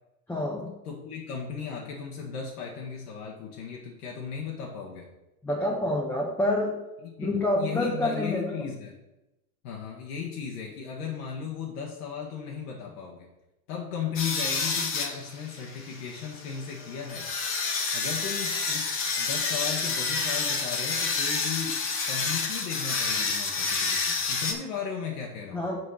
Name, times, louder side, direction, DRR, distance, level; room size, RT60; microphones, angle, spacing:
voice 1, 0.3-0.7 5.4-6.7 7.2-8.6 25.5-25.8, left 1 dB, 5° left, -2 dB, 0.7 m, -27 dB
voice 2, 0.8-5.1 7.0-9.0 9.6-13.3 13.7-17.3 17.9-25.7, left 7 dB, 65° left, -1 dB, 1.5 m, -36 dB
sound 1, 14.2-24.5, left 4 dB, 25° left, 1.1 m, -29 dB
6.3 x 4.5 x 5.6 m, 0.97 s
supercardioid pair, 130°, 48 cm